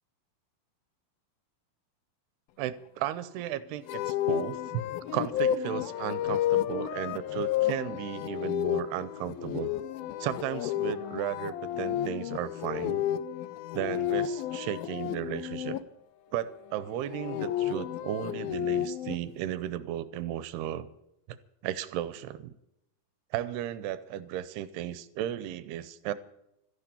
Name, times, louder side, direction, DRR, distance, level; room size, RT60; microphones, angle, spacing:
voice 1, 2.6-4.8 5.1-9.7 10.2-13.1 13.7-15.8 16.3-20.9 21.3-21.4 21.6-22.5 23.3-26.1, right 12 dB, 80° right, 15 dB, 2.7 m, -35 dB
Acoustic guitar horror, 3.9-15.8 16.9-19.2, left 11 dB, 80° left, 2.3 m, -31 dB
14.0 x 11.0 x 8.4 m, 0.82 s
omnidirectional pair, 4.7 m